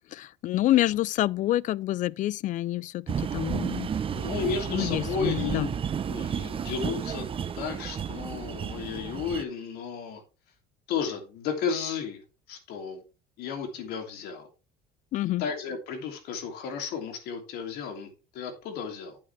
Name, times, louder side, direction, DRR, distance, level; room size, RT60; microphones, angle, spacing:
voice 1, 0.1-3.9 4.7-5.7 15.1-15.4, left 15 dB, 50° left, 0.4 m, -27 dB
sound 1, 3.1-9.4, right 7 dB, 30° right, 0.8 m, -32 dB
voice 2, 4.1-5.6 6.1-7.3 7.5-10.2 10.9-12.2 12.5-13.0 13.4-14.5 15.4-19.2, left 6 dB, 70° left, 2.9 m, -33 dB
8.9 x 8.6 x 3.4 m
supercardioid pair, 105°, 17 cm